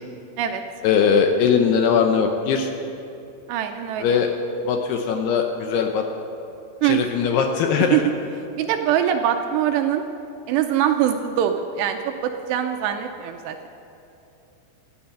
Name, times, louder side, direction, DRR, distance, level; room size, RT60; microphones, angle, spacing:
voice 1, 0.8-2.7 4.0-4.3 4.6-6.0 6.8-8.0, left 6 dB, 75° left, 4 dB, 2.5 m, -20 dB
voice 2, 3.5-4.1 6.8-7.0 7.8-8.0 8.5-10.0 10.5-13.7, right 10 dB, 80° right, 5 dB, 2.6 m, -23 dB
15.5 x 10.5 x 9.0 m, 2.8 s
omnidirectional pair, 5.4 m